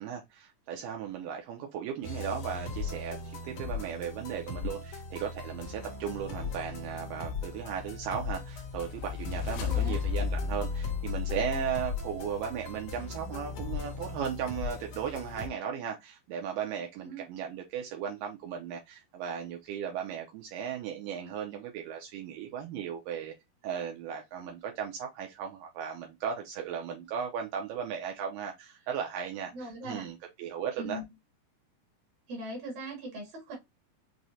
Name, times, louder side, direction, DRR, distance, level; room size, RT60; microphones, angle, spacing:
voice 1, 0.0-23.3 23.6-31.0, right 8 dB, 80° right, 2.2 m, -36 dB
sound 1, 2.0-15.5, left 3 dB, 65° left, 1.4 m, -39 dB
sound 2, 8.1-12.3, left 8 dB, 85° left, 2.4 m, -33 dB
voice 2, 9.7-10.0 17.0-17.2 29.5-30.1 30.8-31.0 32.3-33.6, right 1 dB, 60° right, 2.4 m, -40 dB
6.1 x 2.1 x 2.7 m
omnidirectional pair, 4.0 m